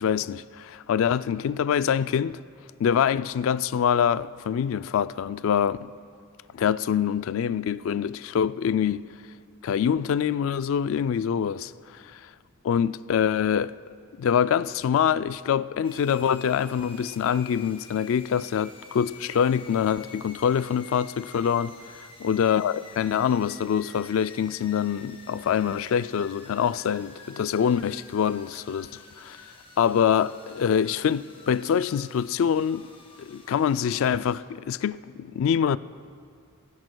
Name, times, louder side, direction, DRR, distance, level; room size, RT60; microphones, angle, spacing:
voice 1, 0.0-2.4 2.8-5.9 6.5-9.0 9.6-11.7 12.0-12.2 12.6-13.7 14.2-28.9 29.2-29.4 29.8-32.9 33.2-35.8, left 8 dB, 65° left, 0.3 m, -25 dB
sound 1, 15.8-34.4, left 3 dB, 25° left, 2.2 m, -49 dB
23.0 x 15.0 x 2.3 m
head